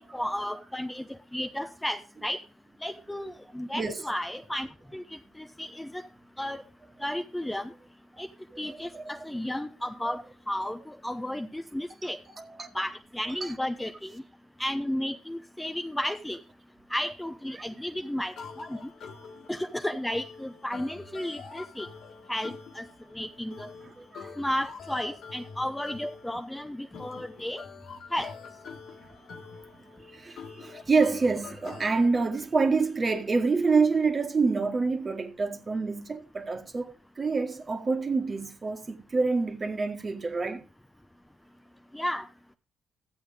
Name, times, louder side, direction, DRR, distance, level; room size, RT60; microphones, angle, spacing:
voice 1, 0.1-2.4 2.8-4.7 4.9-5.0 5.4-6.0 6.4-6.6 7.0-7.7 8.2-8.3 8.6-12.2 12.7-14.2 14.6-16.4 16.9-18.8 19.5-21.9 22.3-22.8 23.1-23.7 24.4-27.6 28.1-28.3 41.9-42.3, left 1 dB, 10° left, 0.7 m, -33 dB
voice 2, 8.5-9.1 10.1-10.2 12.3-12.7 13.4-13.5 24.0-24.3 30.1-40.6, right 4 dB, 35° right, 1.5 m, -27 dB
sound 1, 18.4-32.1, left 5 dB, 70° left, 1.7 m, -46 dB
14.0 x 7.8 x 3.5 m
cardioid pair, 90°, 0 cm